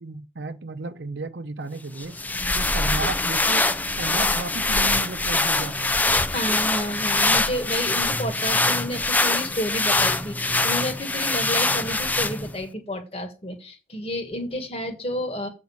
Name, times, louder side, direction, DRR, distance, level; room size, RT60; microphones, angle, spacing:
voice 1, 0.0-2.2 2.5-3.7 4.0-5.9, right 3 dB, 80° right, 0.7 m, -33 dB
sound 1, 2.0-12.6, left 2 dB, 10° left, 0.4 m, -23 dB
voice 2, 6.3-15.5, equal, 35° left, 1.6 m, -30 dB
8.0 x 5.2 x 7.1 m
head